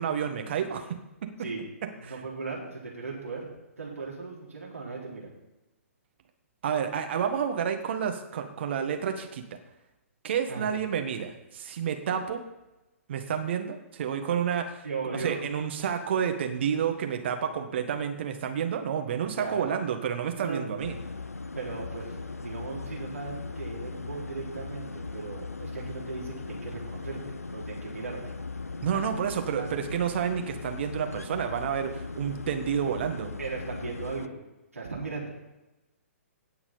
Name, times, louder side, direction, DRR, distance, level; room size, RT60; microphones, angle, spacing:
voice 1, 0.0-1.3 2.0-2.2 6.6-9.4 10.2-12.4 13.1-20.9 28.8-33.3, right 8 dB, 50° right, 5 dB, 1.7 m, -30 dB
voice 2, 2.0-3.5 3.8-5.3 10.5-10.7 14.8-15.4 19.4-19.7 20.4-20.7 21.5-27.2 27.5-28.2 28.9-29.0 29.6-29.7 33.4-34.4 34.7-35.4, right 4 dB, 75° right, -4 dB, 3.8 m, -37 dB
sound 1, 20.8-34.3, left 4 dB, 80° left, 0.6 m, -39 dB
17.5 x 6.0 x 5.5 m, 0.99 s
figure-of-eight pair, 120°, 8 cm